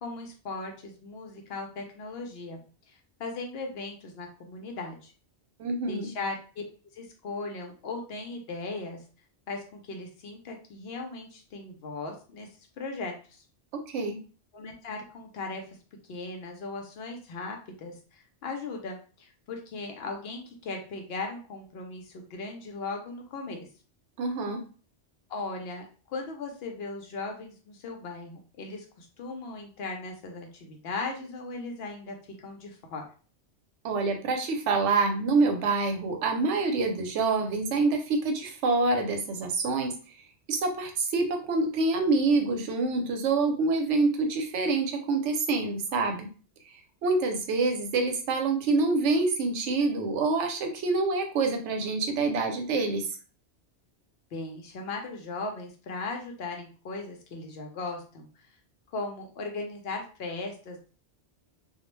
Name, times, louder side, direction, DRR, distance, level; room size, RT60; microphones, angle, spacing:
voice 1, 0.0-2.6 2.9-5.1 5.9-6.6 6.9-9.0 9.5-12.5 12.8-13.4 14.5-15.6 16.1-23.7 25.3-33.0 54.3-58.3 58.9-60.9, left 3 dB, 65° left, 2 dB, 0.8 m, -38 dB
voice 2, 5.6-6.1 13.7-14.2 24.2-24.6 33.8-40.0 40.5-46.3 47.0-53.1, right 3 dB, 85° right, 5 dB, 0.9 m, -26 dB
2.3 x 2.0 x 3.0 m, 0.37 s
omnidirectional pair, 1.2 m